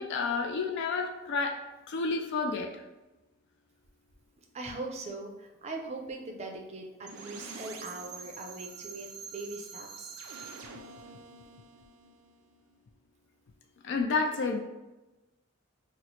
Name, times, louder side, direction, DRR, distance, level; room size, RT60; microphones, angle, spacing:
voice 1, 0.0-1.6 1.9-2.8 13.8-14.6, left 4 dB, 55° left, 4 dB, 0.3 m, -30 dB
voice 2, 4.5-10.2, right 2 dB, 30° right, 2 dB, 0.4 m, -41 dB
sound 1, 7.1-12.9, right 5 dB, 90° right, 0.4 m, -46 dB
3.0 x 2.0 x 4.0 m, 1.0 s
head